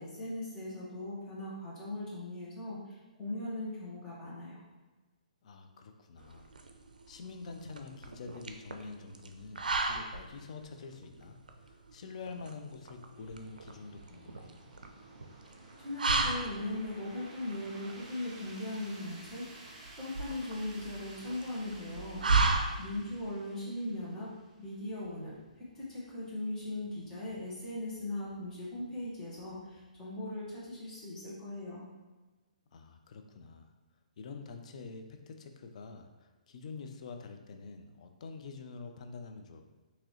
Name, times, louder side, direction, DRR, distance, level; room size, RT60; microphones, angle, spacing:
voice 1, 0.0-4.6 15.8-19.7 20.0-22.2 22.8-24.3 24.6-31.8, left 1 dB, 15° left, -8 dB, 1.4 m, -39 dB
voice 2, 5.4-6.5 7.1-14.5 32.7-33.7 34.2-39.6, left 4 dB, 55° left, 6 dB, 0.5 m, -46 dB
sound 1, 6.2-23.2, right 3 dB, 85° right, 0.4 m, -35 dB
sound 2, 13.1-31.7, right 2 dB, 25° right, 0.9 m, -56 dB
3.7 x 2.9 x 3.0 m, 1.2 s
hypercardioid pair, 140°, 4 cm